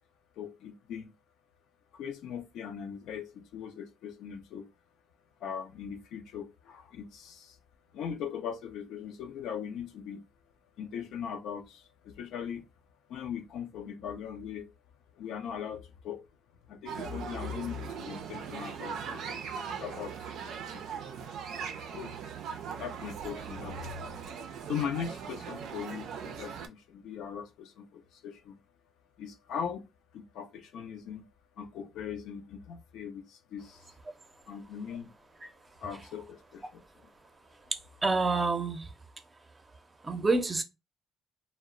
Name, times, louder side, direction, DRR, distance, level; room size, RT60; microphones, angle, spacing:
voice 1, 0.4-1.1 1.9-4.7 5.4-7.6 7.9-10.2 10.8-12.6 13.1-14.7 15.1-16.2 16.7-22.1 22.7-24.3 24.6-28.6 29.2-29.8 30.1-31.3 31.6-33.9 34.5-35.1 35.8-36.8, left 7 dB, 75° left, 0.5 m, -40 dB
sound 1, 16.9-26.7, right 7 dB, 75° right, 0.4 m, -40 dB
voice 2, 37.7-38.9 40.0-40.6, right 3 dB, 30° right, 0.6 m, -28 dB
2.0 x 2.0 x 3.6 m
supercardioid pair, 65°, 0 cm